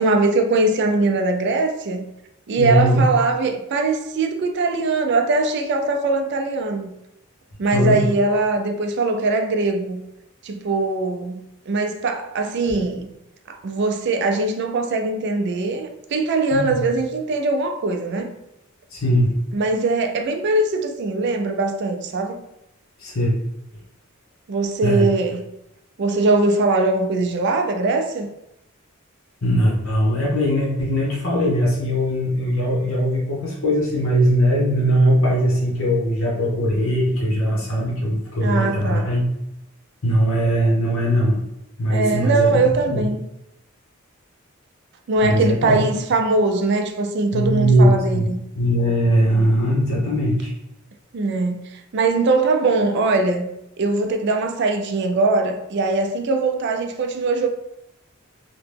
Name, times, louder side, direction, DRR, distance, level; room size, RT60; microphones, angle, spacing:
voice 1, 0.0-2.1 2.5-6.9 7.6-10.0 10.4-11.4 11.7-13.1 13.5-18.4 19.5-22.4 24.5-25.4 26.0-28.3 38.4-39.1 41.9-43.3 45.1-48.4 51.1-53.5 53.8-57.5, right 3 dB, 55° right, 0.4 m, -21 dB
voice 2, 2.6-3.0 7.7-8.1 16.5-16.8 18.9-19.3 23.0-23.3 24.8-25.1 29.4-39.2 40.0-41.4 41.8-42.6 42.9-43.0 45.2-45.8 47.3-48.3 48.6-50.5, equal, 80° left, 0.9 m, -20 dB
2.9 x 2.2 x 3.3 m
head